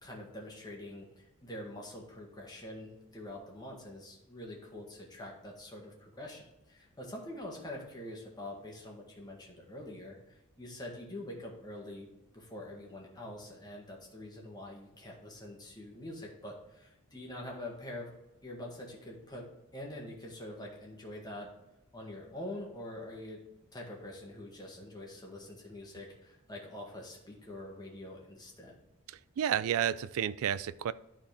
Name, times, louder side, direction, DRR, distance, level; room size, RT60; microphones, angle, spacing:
voice 1, 0.0-12.1 12.3-18.1 18.4-19.5 19.7-21.5 21.9-23.4 23.7-28.7, left 1 dB, 20° left, -2 dB, 1.7 m, -45 dB
voice 2, 29.1-30.9, right 9 dB, 65° right, 17 dB, 0.3 m, -31 dB
12.0 x 4.2 x 3.4 m, 0.91 s
head